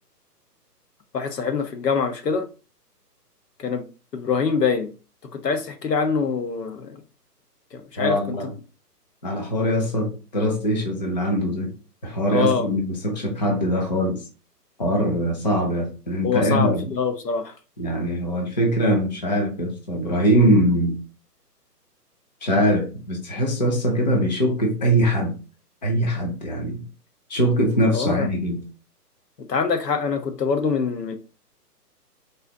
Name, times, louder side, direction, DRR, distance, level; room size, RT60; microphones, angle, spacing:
voice 1, 1.1-2.5 3.6-3.9 4.1-4.9 5.3-7.0 7.7-8.4 12.3-12.7 16.2-17.5 27.9-28.3 29.4-31.2, left 5 dB, 75° left, 1.0 m, -24 dB
voice 2, 8.0-8.5 9.2-11.7 12.0-14.2 14.8-16.9 17.8-21.0 22.4-25.4 25.8-26.8 27.3-28.6, equal, 25° left, 0.7 m, -22 dB
4.0 x 2.7 x 3.8 m
hypercardioid pair, 165°, 49 cm